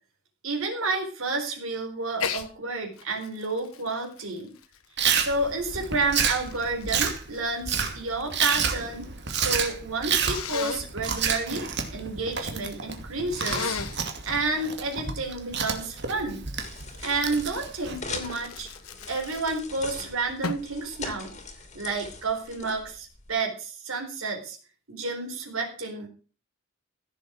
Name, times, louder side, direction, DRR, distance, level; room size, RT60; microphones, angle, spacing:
voice 1, 0.4-4.5 5.2-13.8 14.3-16.4 17.0-18.7 19.1-21.4 21.7-24.6 24.9-26.1, right 3 dB, 75° right, 2 dB, 4.3 m, -30 dB
Sneeze, 2.2-2.5 3.0-5.3 6.0-8.5 8.7-9.4 10.2-10.9 13.3-14.0 17.6-19.8 20.4-20.8, left 5 dB, 80° left, 1.4 m, -36 dB
Chewing mastication, 5.0-18.0, right 6 dB, 50° right, 2.4 m, -29 dB
sound 1, 15.2-23.3, left 4 dB, 30° left, 2.7 m, -42 dB
16.0 x 7.2 x 6.3 m, 0.37 s
head